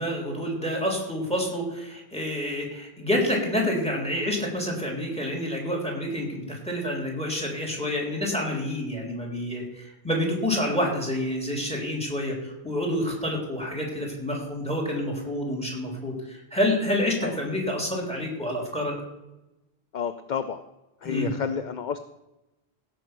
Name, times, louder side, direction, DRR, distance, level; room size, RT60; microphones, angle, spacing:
voice 1, 0.0-18.9 21.0-21.3, left 1 dB, 5° left, 0 dB, 3.5 m, -28 dB
voice 2, 19.9-20.6 21.0-22.0, left 7 dB, 50° left, 10 dB, 0.7 m, -30 dB
16.5 x 6.3 x 6.1 m, 0.97 s
omnidirectional pair, 1.1 m